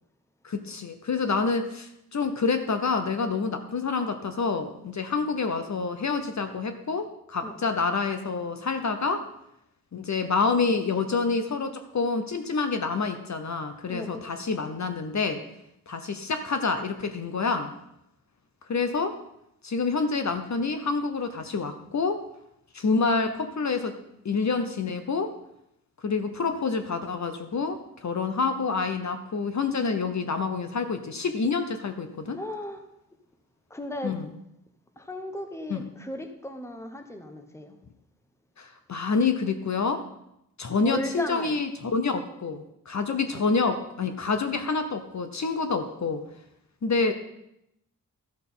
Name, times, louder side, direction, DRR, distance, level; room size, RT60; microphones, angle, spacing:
voice 1, 0.4-9.3 9.9-15.4 15.9-17.7 18.7-19.2 19.6-22.2 22.7-24.0 24.2-25.3 26.0-32.4 34.0-34.2 35.7-35.8 38.6-40.0 40.6-46.2 46.8-47.1, left 4 dB, 50° left, 8 dB, 0.8 m, -27 dB
voice 2, 13.8-14.4 32.3-32.8 33.7-34.2 35.0-37.8 40.8-41.6 43.1-43.4, left 1 dB, 10° left, 6 dB, 1.0 m, -36 dB
13.0 x 6.5 x 5.5 m, 0.80 s
wide cardioid pair, 150°, 35 cm